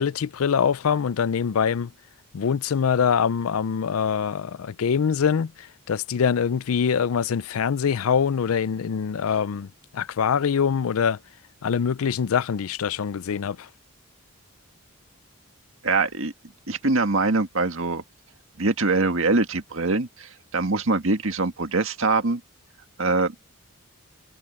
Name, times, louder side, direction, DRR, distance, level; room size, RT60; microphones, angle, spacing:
voice 1, 0.0-1.9 2.3-11.2 11.6-13.7, left 7 dB, 75° left, 0.4 m, -24 dB
voice 2, 15.8-16.3 16.7-18.0 18.6-22.4 23.0-23.3, right 3 dB, 65° right, 1.8 m, -23 dB
head